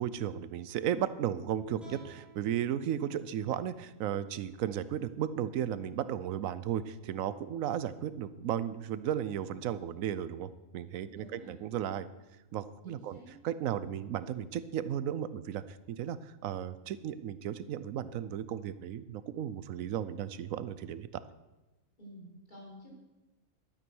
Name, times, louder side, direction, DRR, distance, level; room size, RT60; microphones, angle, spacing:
voice 1, 0.0-12.1 12.5-13.2 13.4-21.1, right 10 dB, 90° right, 15 dB, 1.0 m, -35 dB
sound 1, 1.8-5.0, right 2 dB, ahead, 4.2 m, -58 dB
voice 2, 11.1-11.6 12.8-13.3 22.0-22.9, equal, 35° left, -4 dB, 3.9 m, -51 dB
12.5 x 8.8 x 6.2 m, 1.1 s
omnidirectional pair, 1.4 m